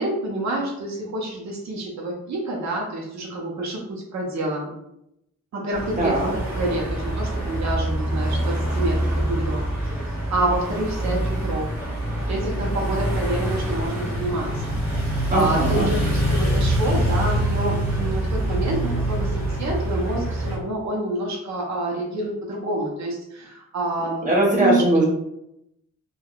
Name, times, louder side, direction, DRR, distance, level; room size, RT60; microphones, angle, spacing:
voice 1, 0.0-4.7 5.5-11.9 12.3-24.3 24.5-24.8, right 1 dB, 65° right, -2 dB, 0.7 m, -28 dB
sound 1, 5.7-20.6, right 1 dB, 5° right, 1.0 m, -25 dB
voice 2, 6.0-6.3 15.3-15.9 24.2-25.0, right 1 dB, 25° right, -3 dB, 0.8 m, -20 dB
3.4 x 2.3 x 2.3 m, 0.80 s
wide cardioid pair, 155°, 30 cm